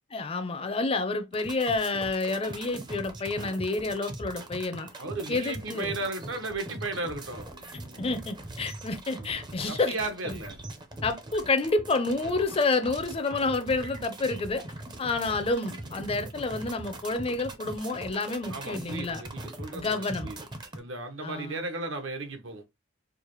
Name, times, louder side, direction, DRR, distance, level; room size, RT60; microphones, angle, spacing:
voice 1, 0.1-4.9 5.3-6.0 8.0-10.0 10.2-10.4 11.0-14.6 15.0-19.2 19.7-20.3 21.2-21.6, left 3 dB, 30° left, 0.5 m, -29 dB
sound 1, 1.3-20.8, right 1 dB, 20° right, 0.5 m, -41 dB
voice 2, 5.0-7.5 9.7-10.6 18.5-20.4 20.8-22.6, right 2 dB, 70° right, 0.9 m, -35 dB
4.7 x 2.1 x 3.0 m
head